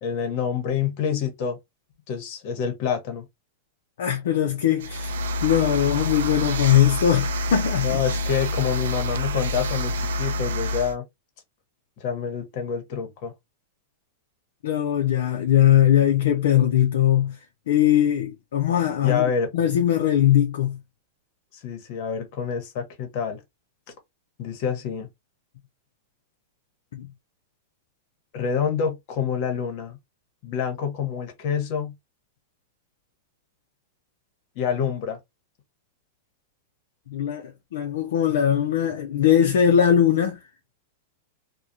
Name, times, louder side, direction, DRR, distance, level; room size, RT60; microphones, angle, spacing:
voice 1, 0.0-1.6 2.1-3.2 7.8-11.0 12.0-13.3 19.0-19.5 21.6-23.4 24.4-25.1 28.3-30.0 30.4-31.9 34.5-35.2, left 7 dB, 55° left, 1.0 m, -27 dB
voice 2, 4.0-5.2 5.4-8.0 14.6-17.4 17.7-19.2 19.5-20.8 26.9-27.1 37.1-40.4, left 10 dB, 75° left, 0.5 m, -20 dB
sound 1, 4.8-10.9, left 1 dB, 80° right, 0.3 m, -27 dB
2.3 x 2.1 x 2.7 m
hypercardioid pair, 120°, 0 cm